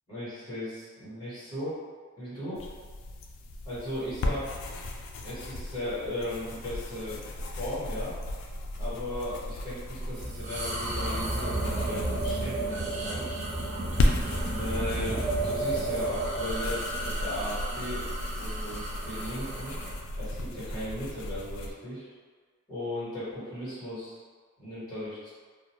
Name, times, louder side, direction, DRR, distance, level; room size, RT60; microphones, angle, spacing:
voice 1, 0.1-1.8 2.2-2.6 3.6-4.5 5.2-7.2 7.6-8.1 8.8-13.3 14.4-19.8 20.2-22.0 22.7-24.2 24.6-25.3, left 1 dB, 20° left, -12 dB, 1.3 m, -36 dB
sound 1, 2.5-21.7, left 1 dB, 70° left, 0.3 m, -35 dB
sound 2, 10.1-19.9, right 2 dB, 35° right, 0.4 m, -32 dB
2.5 x 2.1 x 2.9 m, 1.5 s
head